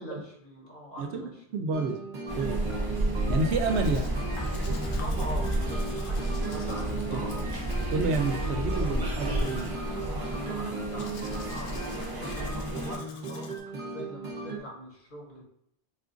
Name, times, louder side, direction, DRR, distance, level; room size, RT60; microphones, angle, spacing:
voice 1, 0.0-1.7 5.0-7.4 10.5-15.4, equal, 50° left, -3 dB, 1.3 m, -43 dB
voice 2, 1.5-2.0 2.4-2.6 3.3-4.2 7.1-7.2 7.9-9.7, right 3 dB, 80° right, 6 dB, 0.9 m, -29 dB
sound 1, 1.7-14.6, right 3 dB, 50° right, 0.9 m, -37 dB
sound 2, 2.3-13.0, right 1 dB, 25° right, 0.6 m, -31 dB
Domestic sounds home sounds, 3.4-13.6, left 4 dB, 80° left, 0.9 m, -50 dB
4.1 x 2.4 x 3.8 m, 0.72 s
omnidirectional pair, 1.1 m